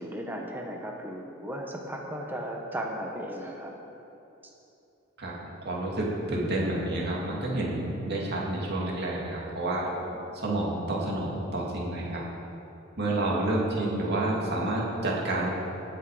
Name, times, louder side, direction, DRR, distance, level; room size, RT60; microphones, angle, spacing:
voice 1, 0.0-3.7 9.8-10.2, equal, 10° right, 0 dB, 1.0 m, -36 dB
voice 2, 5.2-9.9 10.3-12.2 13.0-15.5, right 1 dB, 50° right, -4 dB, 2.2 m, -29 dB
18.5 x 6.1 x 4.8 m, 2.9 s
head